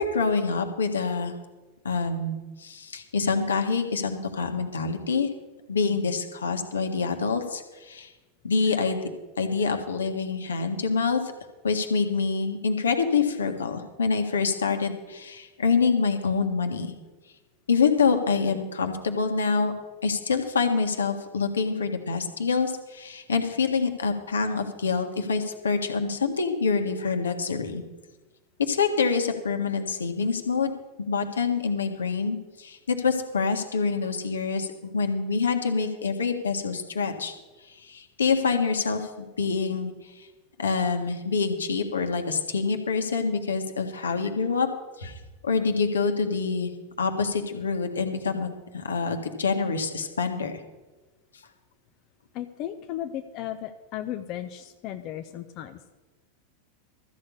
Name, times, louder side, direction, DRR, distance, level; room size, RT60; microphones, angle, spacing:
voice 1, 0.0-1.3 1.8-5.3 5.7-8.1 8.4-9.0 9.4-11.2 11.6-16.9 17.7-19.7 20.0-27.8 28.7-30.7 31.0-37.3 37.8-39.9 40.6-44.7 45.0-45.1 45.4-46.7 47.0-50.5, left 5 dB, 80° left, 5 dB, 1.6 m, -26 dB
voice 2, 52.3-55.9, left 11 dB, 45° left, 6 dB, 0.7 m, -35 dB
13.5 x 6.4 x 8.5 m, 1.2 s
figure-of-eight pair, 90°, 0 cm